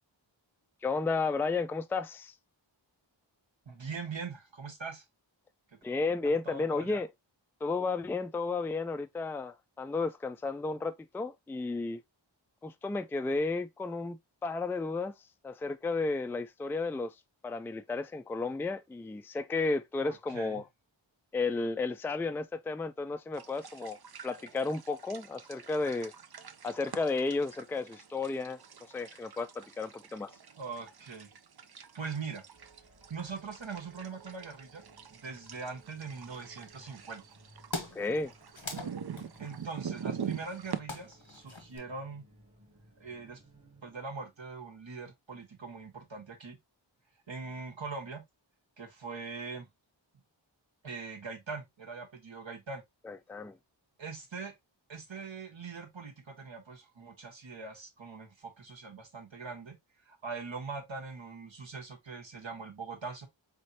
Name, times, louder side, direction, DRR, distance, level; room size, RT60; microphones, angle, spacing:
voice 1, 0.8-2.3 5.8-7.1 7.6-12.0 12.6-14.2 14.4-15.1 15.4-17.1 17.4-20.6 21.3-24.0 24.2-26.1 26.6-30.3 37.9-38.3 53.1-53.6, left 3 dB, 5° left, 0.3 m, -33 dB
voice 2, 3.6-5.0 5.7-5.8 6.2-7.0 20.0-20.6 30.6-31.3 31.9-32.4 33.1-34.8 35.1-37.2 38.7-38.9 39.4-42.3 43.0-43.4 43.8-46.6 47.3-48.2 48.8-49.7 50.8-52.8 54.0-54.5 54.9-59.8 60.0-63.3, right 4 dB, 70° right, 1.2 m, -42 dB
sound 1, 23.3-40.8, right 7 dB, 55° right, 0.5 m, -45 dB
sound 2, 32.5-44.7, right 2 dB, 35° right, 1.4 m, -61 dB
sound 3, 36.0-36.7 37.3-37.4 37.6-41.8, left 3 dB, 85° left, 1.3 m, -43 dB
4.2 x 3.2 x 2.6 m
wide cardioid pair, 40°, 47 cm